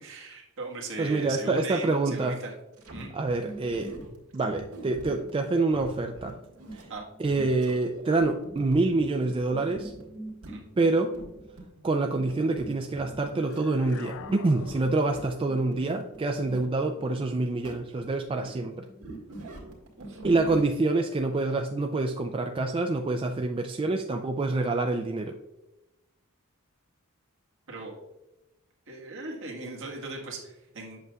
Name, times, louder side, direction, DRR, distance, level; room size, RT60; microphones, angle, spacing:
voice 1, 0.0-2.5 2.9-3.1 6.9-7.0 10.5-10.6 18.4-18.5 20.0-20.2 27.7-28.0 28.9-31.1, right 3 dB, 60° right, -2 dB, 1.6 m, -38 dB
voice 2, 1.0-2.4 3.1-3.9 4.3-6.4 6.7-6.8 7.2-9.9 10.8-11.2 11.8-18.8 20.2-25.4, right 3 dB, 25° right, 3 dB, 0.3 m, -26 dB
sound 1, 2.7-20.8, right 2 dB, 80° right, 1.8 m, -44 dB
sound 2, 13.3-15.6, left 6 dB, 60° left, 0.4 m, -45 dB
8.0 x 6.2 x 2.3 m, 0.98 s
head